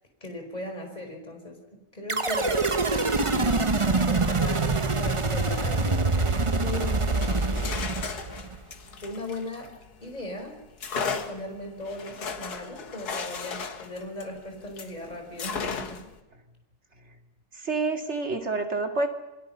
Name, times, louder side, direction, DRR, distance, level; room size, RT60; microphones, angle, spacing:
voice 1, 0.2-2.6 3.2-7.6 9.0-9.7 10.0-10.6 10.9-16.1, left 1 dB, 25° left, 3 dB, 5.2 m, -38 dB
sound 1, 2.1-8.6, right 3 dB, 25° right, 0.9 m, -25 dB
sound 2, 7.1-10.1 10.8-15.0 15.4-16.2, left 5 dB, 75° left, 2.1 m, -35 dB
voice 2, 17.5-19.1, right 3 dB, 45° right, 4 dB, 2.7 m, -28 dB
29.0 x 22.0 x 5.7 m, 1.0 s
omnidirectional pair, 1.7 m